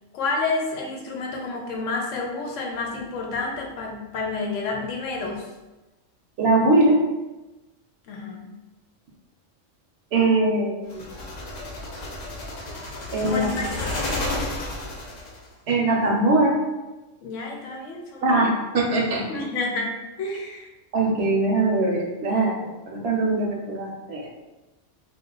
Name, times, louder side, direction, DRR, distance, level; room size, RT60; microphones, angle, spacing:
voice 1, 0.1-5.5 8.1-8.5 13.2-14.3 17.2-18.4 19.3-20.7, left 3 dB, 80° left, 0 dB, 1.0 m, -30 dB
voice 2, 6.4-7.0 10.1-11.0 13.1-13.5 15.7-16.6 18.2-19.2 20.9-24.3, right 2 dB, 65° right, -1 dB, 0.8 m, -21 dB
sound 1, 10.9-15.5, left 2 dB, 60° left, 0.4 m, -32 dB
2.3 x 2.3 x 3.7 m, 1.1 s
omnidirectional pair, 1.3 m